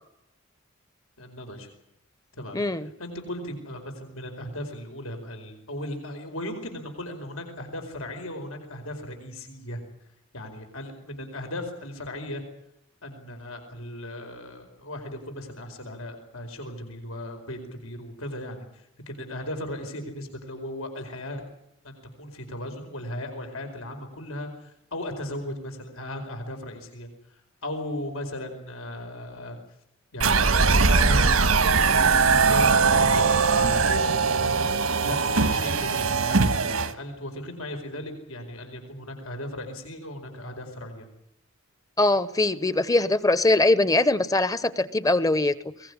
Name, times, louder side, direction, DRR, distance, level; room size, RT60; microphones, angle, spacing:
voice 1, 1.2-1.7 2.4-9.8 10.3-12.4 13.0-21.4 21.8-29.6 30.1-34.7 35.0-41.1, left 1 dB, 90° left, 5 dB, 4.8 m, -37 dB
voice 2, 2.5-2.9 42.0-45.5, left 2 dB, 15° left, 15 dB, 0.8 m, -22 dB
sound 1, 30.2-36.9, right 4 dB, 90° right, 1.5 m, -21 dB
22.5 x 19.0 x 9.8 m, 0.77 s
head